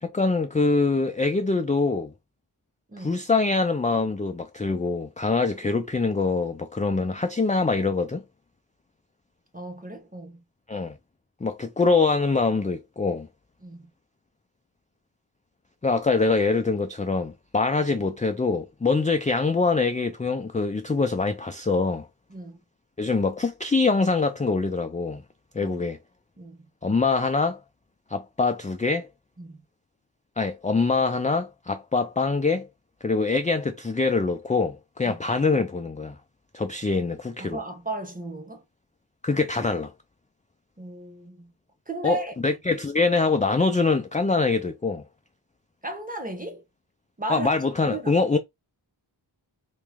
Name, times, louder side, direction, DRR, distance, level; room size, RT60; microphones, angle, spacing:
voice 1, 0.0-2.1 3.0-8.2 10.7-11.0 11.4-13.3 15.8-22.1 23.0-25.2 25.5-26.0 26.8-27.6 28.1-29.1 30.4-32.7 33.0-36.2 36.5-37.6 39.2-39.9 42.0-45.0 47.3-48.4, left 3 dB, 15° left, 0.4 m, -24 dB
voice 2, 9.5-10.4 13.6-13.9 22.3-22.6 25.6-25.8 26.4-26.6 29.4-29.6 35.0-35.2 37.4-38.6 40.8-41.5 41.9-42.3 45.8-46.6 47.2-47.5 47.8-48.1, right 2 dB, 15° right, 1.0 m, -35 dB
3.2 x 3.0 x 3.4 m
wide cardioid pair, 80°, 48 cm